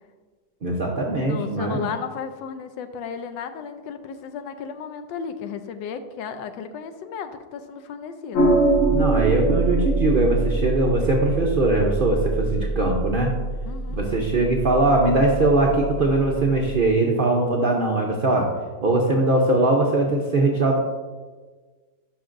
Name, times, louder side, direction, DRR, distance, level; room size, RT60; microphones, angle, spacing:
voice 1, 0.6-1.8 8.9-13.3 14.0-18.5 18.8-20.8, right 2 dB, 75° right, 0 dB, 0.5 m, -21 dB
voice 2, 1.2-8.5 13.7-14.0, left 6 dB, 90° left, 9 dB, 1.3 m, -34 dB
sound 1, 8.3-16.9, right 2 dB, 55° left, 1.2 m, -24 dB
11.5 x 5.2 x 2.5 m, 1.4 s
omnidirectional pair, 2.0 m